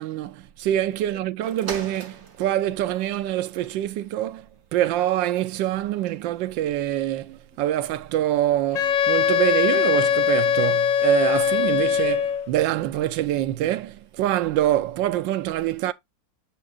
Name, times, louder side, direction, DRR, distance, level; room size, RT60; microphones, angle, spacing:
voice 1, 0.0-4.5 4.7-15.9, right 13 dB, 80° right, 1.4 m, -25 dB
sound 1, 1.4-11.0 11.6-11.7, right 5 dB, 40° right, 1.7 m, -46 dB
Wind instrument woodwind instrument, 8.7-12.5, left 8 dB, 85° left, 1.5 m, -21 dB
7.5 x 7.3 x 2.4 m
omnidirectional pair, 2.0 m